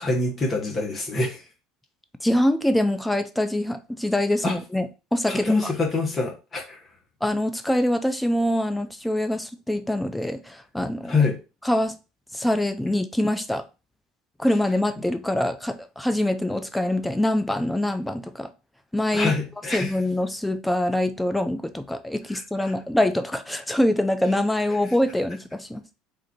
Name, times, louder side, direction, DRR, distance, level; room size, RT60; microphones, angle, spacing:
voice 1, 0.0-1.4 4.4-4.6 5.3-6.8 11.1-11.4 19.1-19.9 22.3-22.7, left 3 dB, 30° left, 1.2 m, -25 dB
voice 2, 2.2-5.7 7.2-11.1 11.6-11.9 12.3-13.6 14.4-18.5 18.9-19.3 19.7-25.8, left 1 dB, 5° left, 0.6 m, -24 dB
3.7 x 2.6 x 4.3 m
supercardioid pair, 90°, 0 cm